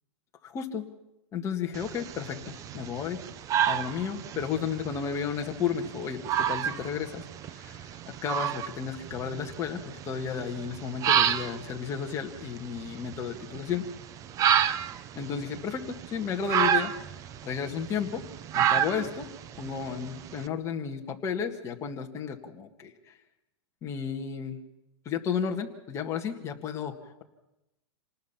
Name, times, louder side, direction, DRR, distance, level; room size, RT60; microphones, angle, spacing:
voice 1, 0.4-0.9 1.3-3.2 3.6-13.9 15.2-16.9 17.4-18.2 18.5-19.3 19.6-23.2 23.8-24.6 25.1-27.2, left 7 dB, 20° left, 2 dB, 1.9 m, -33 dB
sound 1, 1.7-20.4, right 9 dB, 20° right, 0.7 m, -31 dB
27.0 x 19.5 x 5.9 m, 0.91 s
supercardioid pair, 160°, 15 cm